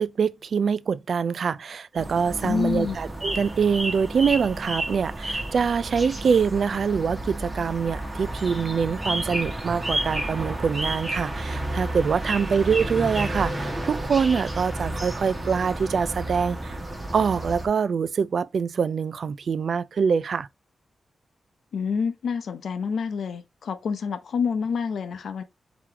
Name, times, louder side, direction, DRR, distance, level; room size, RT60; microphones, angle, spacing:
voice 1, 0.0-16.8 17.1-20.5, right 6 dB, 60° right, 0.3 m, -24 dB
sound 1, 2.0-17.7, right 1 dB, 20° right, 1.2 m, -31 dB
voice 2, 2.4-3.0 21.7-25.4, left 6 dB, 75° left, 0.7 m, -27 dB
3.8 x 3.0 x 4.4 m
wide cardioid pair, 120°, 0 cm